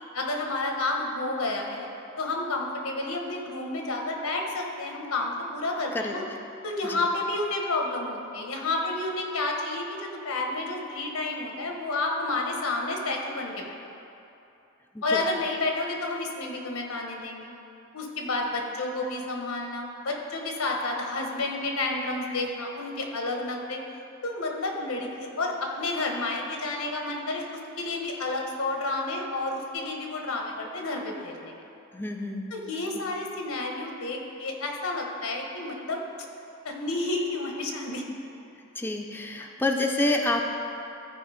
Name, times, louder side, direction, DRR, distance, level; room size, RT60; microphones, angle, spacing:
voice 1, 0.1-1.9 2.2-6.2 6.6-13.8 15.0-17.5 17.9-23.8 24.2-27.4 27.8-31.5 32.5-36.0 36.6-38.0, left 2 dB, 85° left, 1 dB, 1.2 m, -30 dB
voice 2, 5.9-6.4 6.8-7.0 14.9-15.2 31.9-32.5 38.8-40.5, left 2 dB, 10° left, 2 dB, 0.4 m, -28 dB
13.5 x 4.6 x 5.0 m, 2.8 s
head